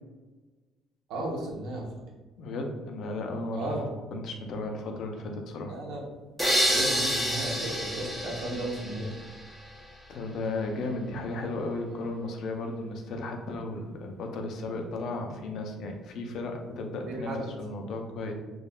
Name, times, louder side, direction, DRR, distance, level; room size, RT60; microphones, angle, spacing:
voice 1, 1.1-1.9 3.5-3.9 5.7-6.0 6.7-9.1 17.1-17.5, right 1 dB, 85° right, -2 dB, 0.8 m, -34 dB
voice 2, 2.4-3.8 4.1-5.8 10.1-17.3 17.6-18.4, left 2 dB, 60° left, 3 dB, 0.5 m, -34 dB
sound 1, 6.4-9.4, equal, ahead, 0.5 m, -28 dB
3.5 x 2.3 x 2.2 m, 1.2 s
cardioid pair, 130°, 0 cm